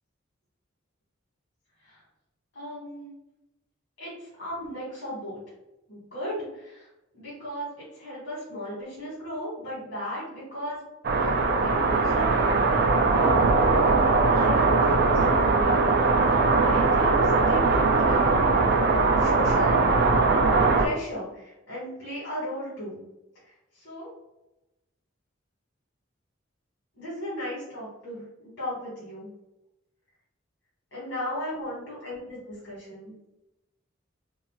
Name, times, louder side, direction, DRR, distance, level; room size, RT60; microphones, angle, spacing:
voice 1, 2.5-3.1 4.0-5.4 5.9-6.9 7.1-10.8 11.1-12.3 14.1-19.8 20.8-23.0 23.7-24.1 27.0-28.3 28.6-29.3 30.9-33.2, equal, 80° left, -8 dB, 1.4 m, -36 dB
sound 1, 11.0-20.9, right 3 dB, 55° right, 0.3 m, -21 dB
4.0 x 2.0 x 2.2 m, 0.93 s
head